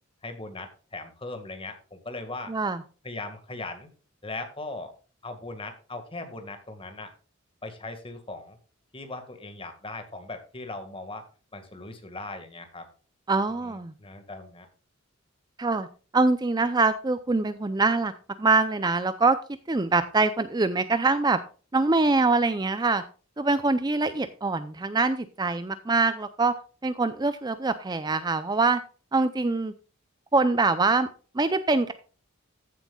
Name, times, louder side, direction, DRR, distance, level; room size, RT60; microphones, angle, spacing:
voice 1, 0.2-2.5 3.0-3.9 4.2-4.9 5.2-7.1 7.6-8.6 8.9-11.2 11.5-12.9 13.6-14.7, left 2 dB, 25° left, 7 dB, 1.7 m, -39 dB
voice 2, 2.5-2.8 13.3-13.9 15.6-15.9 16.1-18.1 18.4-19.4 19.7-21.4 21.7-23.0 23.4-26.6 26.8-28.8 29.1-29.7 30.3-31.1 31.3-31.9, right 3 dB, 20° right, 11 dB, 0.5 m, -24 dB
14.5 x 7.6 x 2.3 m, 0.37 s
head